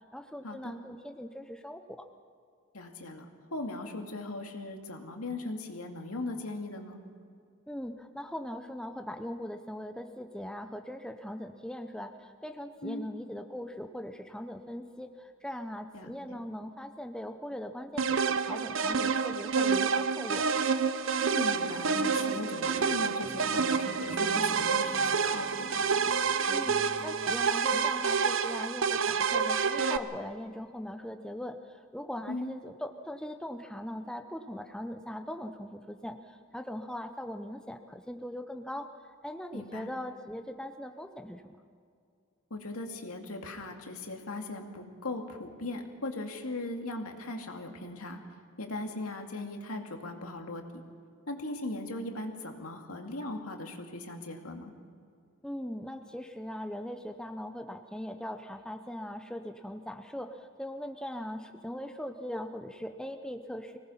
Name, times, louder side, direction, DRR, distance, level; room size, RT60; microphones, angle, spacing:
voice 1, 0.1-2.1 7.7-20.5 26.5-38.9 39.2-41.6 55.4-63.8, equal, 5° left, 6 dB, 0.7 m, -40 dB
voice 2, 2.7-3.3 3.5-7.0 12.8-13.1 15.9-16.4 21.2-25.9 32.3-32.5 39.5-39.9 42.5-48.2 48.6-50.6 51.3-54.7, left 2 dB, 90° left, 3 dB, 2.3 m, -39 dB
sound 1, 18.0-30.0, right 5 dB, 65° right, 0.7 m, -28 dB
sound 2, 21.1-28.5 29.2-29.3, equal, 20° left, 1.6 m, -47 dB
Wind instrument woodwind instrument, 23.8-30.1, right 3 dB, 30° right, 3.4 m, -44 dB
25.0 x 18.5 x 5.6 m, 2.4 s
head